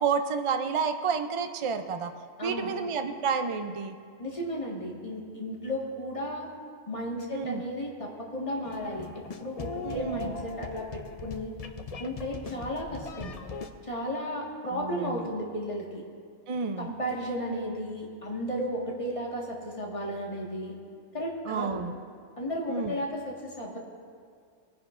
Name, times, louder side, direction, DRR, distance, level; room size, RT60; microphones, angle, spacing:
voice 1, 0.0-2.1 2.4-3.9 7.3-7.6 9.8-10.3 14.7-15.2 16.5-16.9 21.5-21.9 22.7-22.9, right 5 dB, 50° right, 7 dB, 0.4 m, -30 dB
voice 2, 2.4-2.7 4.2-6.5 6.9-11.5 12.0-13.3 13.8-16.0 16.8-20.7 21.1-21.8 22.4-23.8, equal, 25° left, -2 dB, 1.7 m, -34 dB
sound 1, 8.6-13.7, left 4 dB, 50° left, 0.4 m, -40 dB
20.5 x 10.5 x 2.5 m, 2.2 s
omnidirectional pair, 1.3 m